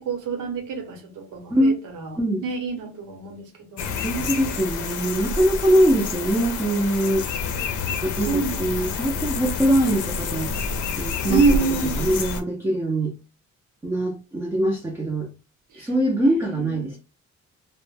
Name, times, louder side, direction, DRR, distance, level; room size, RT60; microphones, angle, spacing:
voice 1, 0.0-4.1 7.9-9.3 11.3-12.0 15.7-15.9 16.2-16.9, right 4 dB, 85° right, 0.9 m, -27 dB
sound 1, 3.8-12.4, left 4 dB, 80° left, 0.5 m, -28 dB
voice 2, 4.0-7.3 8.0-10.5 11.0-11.4 12.0-13.2 13.8-15.3 15.7-17.0, right 1 dB, 10° right, 0.4 m, -22 dB
2.1 x 2.1 x 3.1 m
cardioid pair, 170°, 30 cm